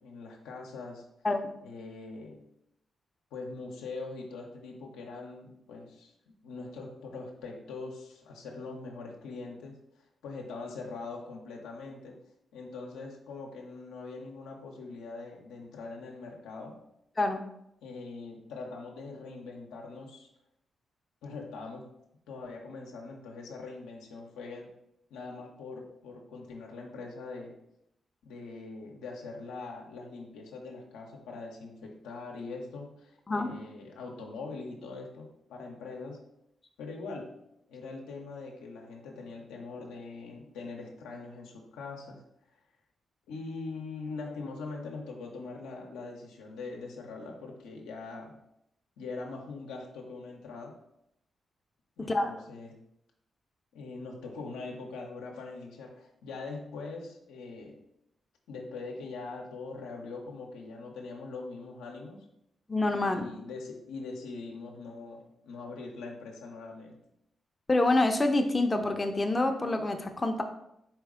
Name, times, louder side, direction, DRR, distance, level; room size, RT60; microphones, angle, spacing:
voice 1, 0.0-1.1 1.6-2.5 3.3-6.1 6.4-9.8 10.2-12.2 12.5-16.8 17.8-20.3 21.2-21.9 22.3-24.7 25.1-27.6 28.2-36.3 36.8-37.4 37.7-42.2 43.3-48.4 49.0-50.8 52.0-52.8 53.7-57.8 58.5-62.2 63.0-67.0, left 3 dB, 85° left, 0 dB, 0.6 m, -42 dB
voice 2, 52.0-52.3 62.7-63.3 67.7-70.4, left 2 dB, 30° left, 5 dB, 0.6 m, -27 dB
4.3 x 3.0 x 3.6 m, 0.79 s
supercardioid pair, 45°, 0 cm